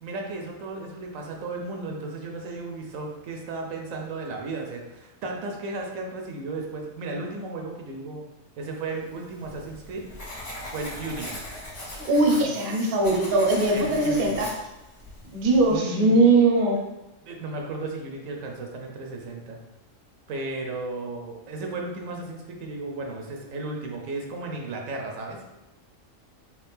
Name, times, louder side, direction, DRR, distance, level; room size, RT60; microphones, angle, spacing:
voice 1, 0.0-8.3 8.6-10.0 10.7-11.4 12.4-12.5 13.7-14.4 15.7-16.2 17.2-19.6 20.3-25.5, right 2 dB, 80° right, 1 dB, 1.0 m, -34 dB
Writing, 9.0-15.8, left 1 dB, 30° left, 0.9 m, -40 dB
voice 2, 11.9-14.5 15.3-16.8, right 2 dB, 55° right, 0 dB, 0.7 m, -20 dB
3.3 x 2.5 x 3.3 m, 1.0 s
omnidirectional pair, 1.4 m